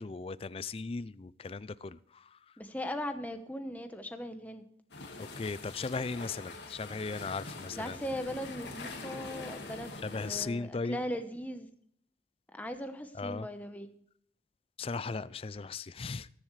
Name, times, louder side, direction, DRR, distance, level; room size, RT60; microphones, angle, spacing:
voice 1, 0.0-2.5 5.2-8.0 10.0-11.0 13.2-13.5 14.8-16.3, left 4 dB, 30° left, 0.4 m, -37 dB
voice 2, 2.6-4.6 7.8-11.7 12.5-13.9, equal, 10° left, 0.9 m, -39 dB
sound 1, 4.9-10.5, left 3 dB, 75° left, 2.0 m, -44 dB
20.0 x 7.2 x 3.2 m
head